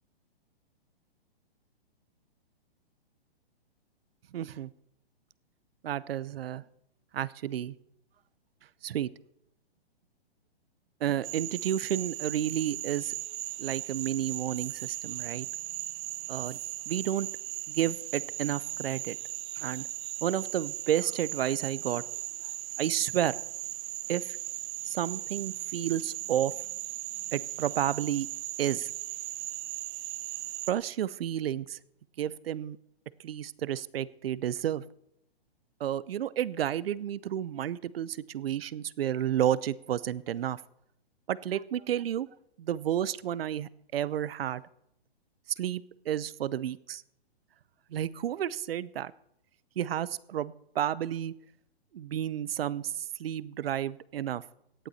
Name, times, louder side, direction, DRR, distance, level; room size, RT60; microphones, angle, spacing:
voice 1, 4.3-4.7 5.8-6.6 7.1-7.7 8.8-9.1 11.0-13.1 13.6-15.5 16.3-16.6 16.9-17.3 17.7-19.2 19.6-19.9 20.2-22.0 22.8-23.4 24.1-24.4 24.8-26.5 27.3-28.3 28.6-28.9 30.7-31.8 32.2-32.8 33.2-34.8 35.8-40.6 41.3-42.3 42.6-44.6 45.6-47.0 47.9-49.1 49.8-51.3 51.9-54.4, right 11 dB, 70° right, 20 dB, 0.8 m, -31 dB
Frog, 11.2-30.7, right 17 dB, 15° right, 0.4 m, -38 dB
18.0 x 11.5 x 4.2 m, 0.77 s
hypercardioid pair, 140°, 31 cm